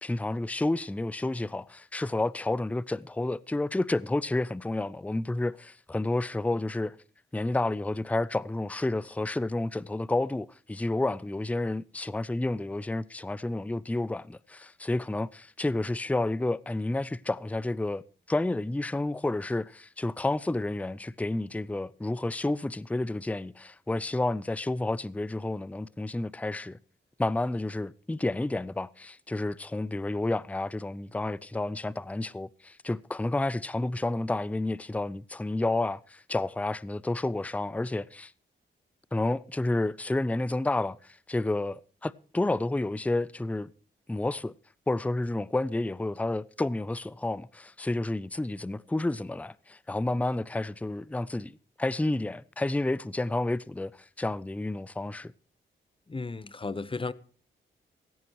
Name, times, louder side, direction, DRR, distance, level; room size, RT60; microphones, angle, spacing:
voice 1, 0.0-7.0 7.3-18.0 18.3-26.8 27.2-38.3 39.1-43.7 44.1-44.5 44.9-55.3, left 2 dB, 5° left, 0.5 m, -30 dB
voice 2, 56.1-57.1, left 3 dB, 25° left, 0.9 m, -34 dB
16.5 x 14.0 x 3.0 m
cardioid pair, 75°, 20 cm